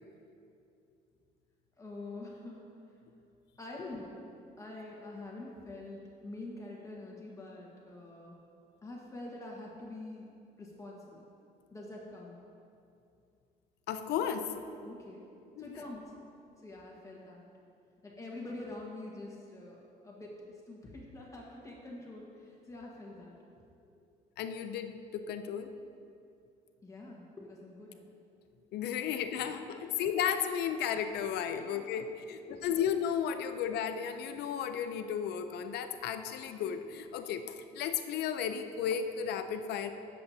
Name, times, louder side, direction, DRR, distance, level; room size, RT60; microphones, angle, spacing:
voice 1, 1.8-2.6 3.6-4.2 4.6-8.4 8.8-10.3 10.6-11.2 11.7-12.4 14.8-15.3 15.6-16.1 16.6-17.5 18.0-23.3 23.8-24.0 26.8-28.0 29.1-29.3 29.7-30.1 31.5-32.6, left 2 dB, 20° left, -3 dB, 1.5 m, -46 dB
voice 2, 13.9-14.7 15.6-15.7 24.4-25.7 28.7-37.4 37.7-39.9, left 8 dB, 75° left, 8 dB, 0.7 m, -34 dB
16.5 x 7.3 x 2.8 m, 2.5 s
cardioid pair, 110°, 17 cm